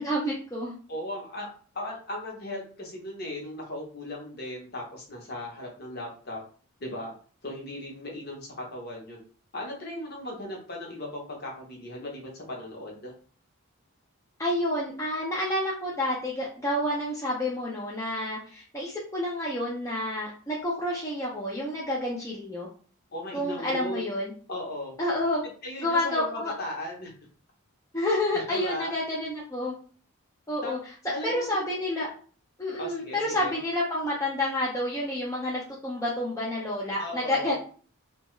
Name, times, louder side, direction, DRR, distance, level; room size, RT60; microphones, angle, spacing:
voice 1, 0.0-0.8 14.4-22.7 23.3-24.3 25.0-25.4 25.8-26.5 27.9-29.7 30.5-30.8 31.2-32.1 32.6-37.5, left 1 dB, 15° left, -5 dB, 0.5 m, -29 dB
voice 2, 0.9-6.4 6.8-7.1 7.4-9.2 9.5-13.1 23.1-24.1 24.5-24.9 25.6-27.1 28.0-28.9 30.6-30.8 31.1-31.5 32.8-33.5 37.0-37.5, left 1 dB, 45° left, -1 dB, 0.9 m, -37 dB
2.7 x 2.2 x 3.1 m, 0.42 s
head